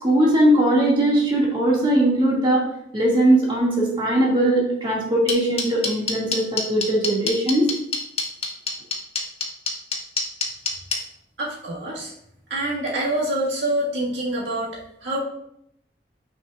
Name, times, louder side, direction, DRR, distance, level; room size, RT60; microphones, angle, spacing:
voice 1, 0.0-2.6 2.9-7.7, right 1 dB, 30° right, -5 dB, 2.1 m, -19 dB
sound 1, 5.3-11.0, left 4 dB, 35° left, 1.2 m, -24 dB
voice 2, 11.4-12.1 12.5-15.2, right 1 dB, 75° right, -5 dB, 1.9 m, -26 dB
9.4 x 5.4 x 2.4 m, 0.75 s
head